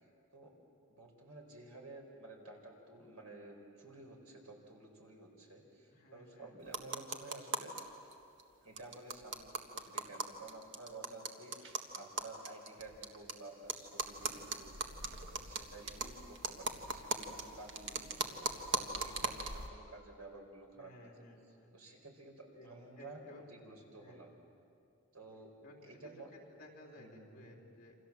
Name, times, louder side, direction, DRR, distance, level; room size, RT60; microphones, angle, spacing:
voice 1, 0.9-7.7 8.6-21.3 21.7-23.2 23.5-24.3 25.1-25.5 25.8-26.3 27.0-27.6, right 2 dB, 90° right, 2 dB, 5.0 m, -53 dB
voice 2, 5.9-6.5 20.7-21.7 22.5-22.7 23.0-23.5 23.8-24.3 25.6-28.0, left 1 dB, 40° left, 0 dB, 3.9 m, -57 dB
sound 1, 6.7-7.8 8.1-8.2 8.4-8.5 8.8-13.3 13.7-19.7, right 4 dB, 55° right, 1.6 m, -39 dB
28.0 x 26.5 x 7.5 m, 2.6 s
head